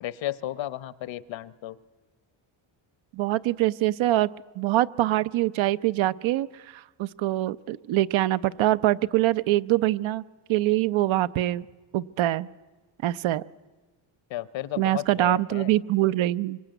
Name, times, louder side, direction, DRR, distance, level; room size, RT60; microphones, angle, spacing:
voice 1, 0.0-1.8 14.3-15.7, left 14 dB, 65° left, 16 dB, 1.0 m, -33 dB
voice 2, 3.1-4.3 4.6-10.2 10.5-11.6 11.9-12.5 13.0-13.4 14.8-16.6, right 15 dB, 70° right, 14 dB, 0.8 m, -24 dB
25.0 x 24.0 x 9.2 m, 1.3 s
cardioid pair, 135°, 50 cm